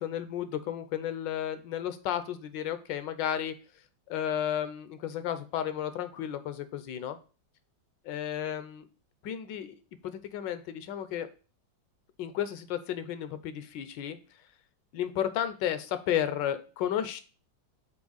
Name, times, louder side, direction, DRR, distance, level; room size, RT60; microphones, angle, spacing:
voice 1, 0.0-3.5 4.1-7.2 8.0-8.9 9.2-11.3 12.2-14.2 14.9-17.2, left 10 dB, 75° left, 12 dB, 1.3 m, -33 dB
6.1 x 4.3 x 3.9 m, 0.36 s
omnidirectional pair, 2.0 m